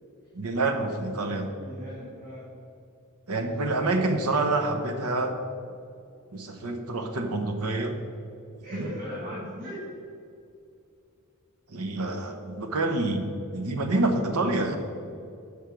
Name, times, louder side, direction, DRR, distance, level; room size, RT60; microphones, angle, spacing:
voice 1, 0.3-1.5 3.3-5.3 6.3-7.9 8.7-8.9 11.7-13.2 13.5-14.8, right 2 dB, 85° right, 5 dB, 1.1 m, -27 dB
voice 2, 1.5-2.5 8.6-9.8 14.5-14.6, equal, 40° right, -7 dB, 2.2 m, -38 dB
10.5 x 6.6 x 4.7 m, 2.6 s
head